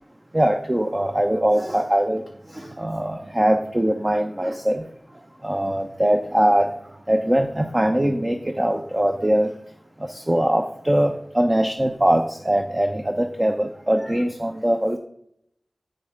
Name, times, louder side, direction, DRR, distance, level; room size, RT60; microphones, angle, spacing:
voice 1, 0.3-2.2 2.5-4.8 5.4-6.7 7.1-9.5 10.0-15.0, right 1 dB, 20° right, 5 dB, 0.6 m, -21 dB
7.7 x 7.7 x 5.0 m, 0.75 s
wide cardioid pair, 85°, 0 cm